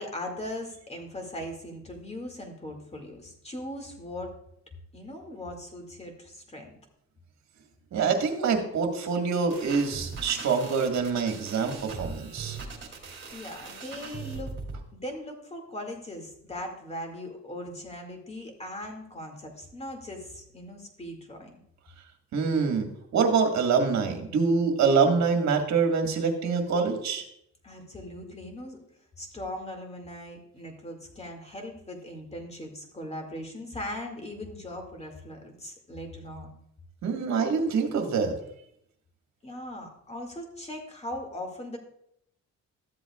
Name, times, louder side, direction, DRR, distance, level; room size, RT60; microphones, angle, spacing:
voice 1, 0.0-4.3 4.9-6.7 13.3-14.5 14.9-21.6 27.6-28.8 29.2-36.5 39.4-41.8, left 1 dB, 20° left, 3 dB, 2.1 m, -39 dB
voice 2, 7.9-12.6 22.3-27.2 37.0-38.3, right 5 dB, 65° right, 4 dB, 1.7 m, -25 dB
sound 1, 9.5-14.8, right 4 dB, 40° right, 2.4 m, -40 dB
13.5 x 7.8 x 2.4 m, 0.73 s
cardioid pair, 90°, 30 cm